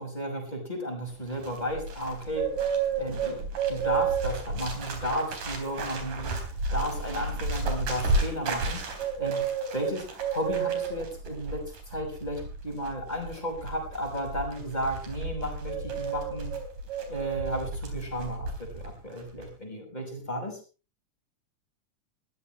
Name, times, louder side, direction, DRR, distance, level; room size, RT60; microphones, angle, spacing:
voice 1, 0.0-2.5 3.0-6.4 6.7-16.5 17.1-20.6, equal, 10° left, 2 dB, 6.1 m, -34 dB
Bird, 1.1-18.9 19.2-19.5, right 4 dB, 85° right, 5.3 m, -32 dB
21.5 x 15.5 x 3.3 m, 0.35 s
omnidirectional pair, 3.6 m